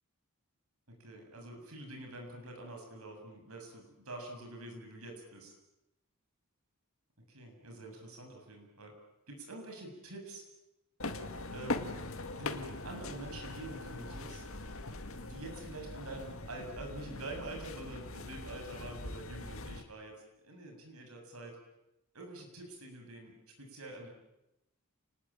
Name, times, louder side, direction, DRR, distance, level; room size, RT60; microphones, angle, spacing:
voice 1, 0.9-5.5 7.3-8.9 9.3-10.4 11.5-11.9 12.4-14.4 15.2-20.1 20.4-21.6 22.1-24.1, right 1 dB, 80° right, 2 dB, 7.6 m, -46 dB
sound 1, 11.0-19.8, left 2 dB, 70° left, 2.1 m, -42 dB
29.0 x 20.5 x 8.9 m, 0.93 s
head